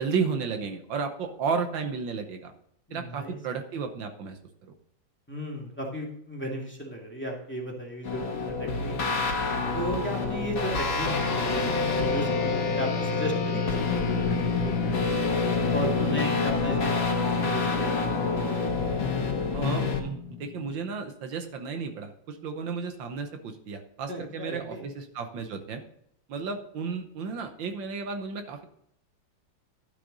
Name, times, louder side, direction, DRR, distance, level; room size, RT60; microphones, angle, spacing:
voice 1, 0.0-2.5 2.9-4.7 9.0-9.1 19.5-25.8 26.3-28.7, right 5 dB, 75° right, 6 dB, 1.7 m, -33 dB
voice 2, 2.9-3.4 5.3-9.2 9.7-15.3 15.7-17.1 17.4-18.4 24.1-24.8, equal, 5° left, -2 dB, 2.0 m, -35 dB
sound 1, 8.0-20.0, left 4 dB, 90° left, 2.3 m, -28 dB
sound 2, 11.1-20.8, left 4 dB, 65° left, 2.0 m, -31 dB
11.5 x 6.4 x 4.0 m, 0.72 s
omnidirectional pair, 2.1 m